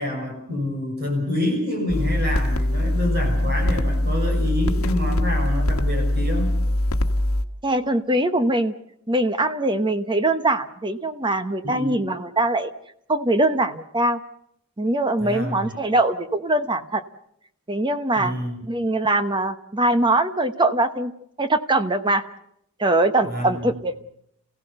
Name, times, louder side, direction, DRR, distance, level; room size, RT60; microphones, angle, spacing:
voice 1, 0.0-6.5 11.6-11.9 15.2-15.7 18.2-18.6 23.2-23.7, left 1 dB, 50° right, 3 dB, 6.3 m, -27 dB
sound 1, 1.9-7.4, left 1 dB, 90° left, 1.3 m, -22 dB
voice 2, 7.6-8.7 9.1-12.7 13.1-14.2 14.8-17.0 17.7-18.3 18.6-21.1 21.4-22.2 22.8-24.0, right 2 dB, 20° right, 10 dB, 1.0 m, -22 dB
27.5 x 16.5 x 6.8 m, 0.72 s
head